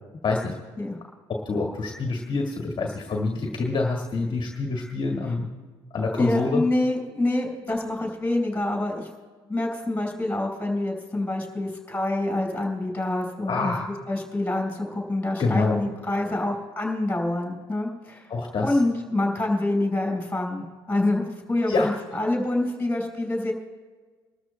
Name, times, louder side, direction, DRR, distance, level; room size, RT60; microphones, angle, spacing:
voice 1, 0.2-0.5 1.3-5.5 5.9-6.6 13.5-13.9 15.4-15.8 18.3-18.8 21.7-21.9, left 3 dB, 35° left, 0 dB, 1.8 m, -26 dB
voice 2, 6.1-9.1 9.5-13.7 14.1-18.3 18.6-23.5, left 2 dB, 10° left, 1 dB, 4.9 m, -26 dB
27.5 x 13.0 x 2.2 m, 1.4 s
hypercardioid pair, 55°, 14 cm